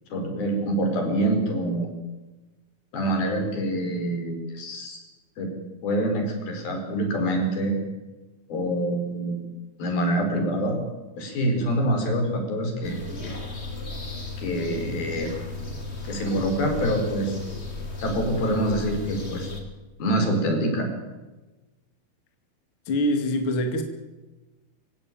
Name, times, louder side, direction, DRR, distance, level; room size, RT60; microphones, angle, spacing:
voice 1, 0.1-1.9 2.9-5.0 5.4-5.5 5.8-7.7 8.5-9.4 9.8-10.8 11.2-13.3 14.4-15.3 16.0-17.4 18.0-19.5 20.0-20.9, right 1 dB, 75° left, 4 dB, 6.4 m, -26 dB
sound 1, 12.8-19.6, left 3 dB, 20° left, 2.8 m, -35 dB
voice 2, 22.9-23.8, left 1 dB, 40° left, 5 dB, 2.7 m, -24 dB
26.0 x 16.5 x 9.2 m, 1.2 s
omnidirectional pair, 4.3 m